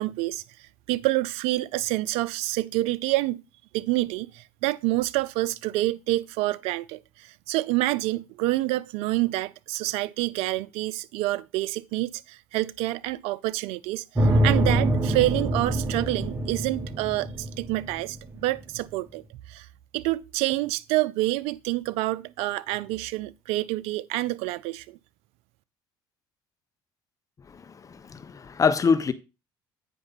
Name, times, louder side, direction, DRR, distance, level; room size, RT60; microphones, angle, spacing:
voice 1, 0.0-3.4 3.7-19.2 19.5-19.7 19.9-25.0, right 18 dB, 80° right, 0.5 m, -27 dB
sound 1, 14.1-18.3, right 1 dB, 25° right, 2.7 m, -25 dB
voice 2, 27.5-29.1, left 5 dB, 35° left, 0.9 m, -25 dB
9.2 x 5.3 x 4.0 m
supercardioid pair, 80°, 10 cm